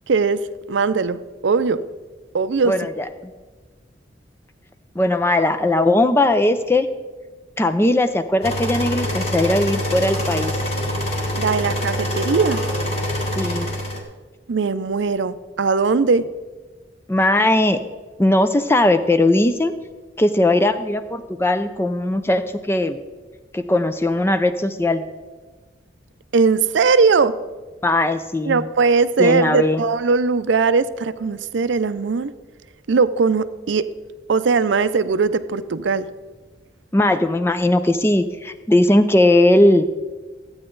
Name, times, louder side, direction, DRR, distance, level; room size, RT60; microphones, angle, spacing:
voice 1, 0.1-0.4 0.7-1.8 2.3-2.7 11.3-12.6 14.5-16.2 26.3-27.3 28.5-32.3 32.9-33.9 34.3-36.1, right 4 dB, 80° right, 14 dB, 0.5 m, -19 dB
voice 2, 2.7-3.3 5.0-6.9 7.6-10.5 13.4-13.7 17.1-17.8 18.2-19.7 20.2-23.0 23.5-25.0 27.8-28.7 29.2-29.8 36.9-39.9, left 1 dB, 15° left, 10 dB, 0.4 m, -18 dB
sound 1, 8.4-14.0, equal, 35° left, 1.6 m, -25 dB
14.0 x 8.7 x 3.9 m, 1.3 s
head